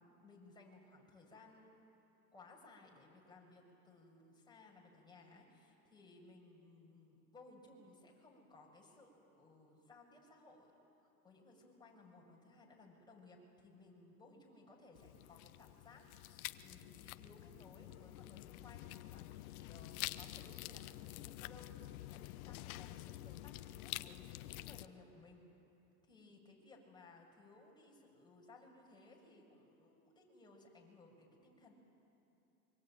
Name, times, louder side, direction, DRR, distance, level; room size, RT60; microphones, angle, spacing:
voice 1, 0.0-1.8 2.3-10.7 11.0-21.7 22.1-25.4 26.0-31.7, left 2 dB, 10° left, -2 dB, 7.0 m, -61 dB
sound 1, 14.9-24.9, left 16 dB, 65° left, 0.9 m, -48 dB
25.0 x 24.0 x 9.1 m, 2.8 s
hypercardioid pair, 100°, 45 cm